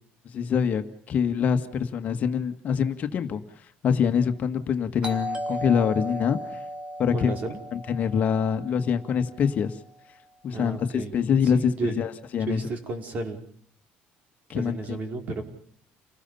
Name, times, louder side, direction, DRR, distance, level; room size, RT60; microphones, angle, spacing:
voice 1, 0.3-3.4 3.8-6.4 7.0-7.3 7.7-9.7 10.4-12.6 14.5-15.0, left 7 dB, 40° left, 7 dB, 1.9 m, -25 dB
Doorbell, 5.0-9.6, equal, 25° right, 3.2 m, -36 dB
voice 2, 7.1-7.6 10.5-11.1 11.4-12.1 12.5-13.4 14.5-15.4, right 2 dB, 40° right, 5 dB, 4.8 m, -33 dB
29.5 x 19.5 x 5.7 m, 0.63 s
cardioid pair, 150°, 4 cm